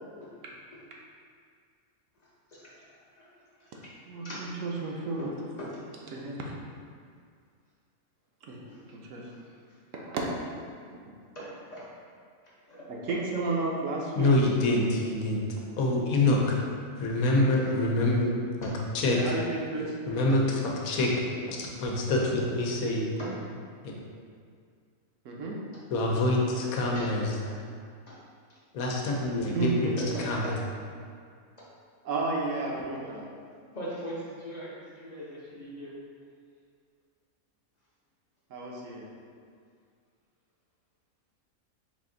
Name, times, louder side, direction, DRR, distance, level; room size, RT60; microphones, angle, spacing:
voice 1, 2.2-2.8 3.2-3.3 3.6-3.7 4.2-4.4 5.2-5.3 5.6-5.8 8.7-8.8 9.2-9.4 9.7-9.8 11.3-11.8 12.6-13.2 18.6-18.7 21.8-21.9 23.2-23.4 26.9-27.6 28.0-28.2 28.5-28.6 29.0-29.2 30.0-30.5 33.7-35.9, equal, 40° left, -7 dB, 0.6 m, -41 dB
voice 2, 4.1-5.3 6.1-6.4 8.4-8.6 8.9-9.3 9.9-10.5 12.9-14.3 19.1-19.9 25.2-25.6 29.5-29.9 32.0-33.3 38.5-39.1, right 3 dB, 70° right, -2 dB, 0.9 m, -32 dB
voice 3, 14.1-15.4 15.8-16.6 17.0-18.3 18.6-18.7 18.9-19.2 20.1-21.1 21.5-23.1 23.8-23.9 25.9-27.3 28.7-30.5, left 2 dB, 85° left, -1 dB, 1.1 m, -26 dB
4.1 x 2.5 x 3.7 m, 2.1 s
omnidirectional pair, 1.4 m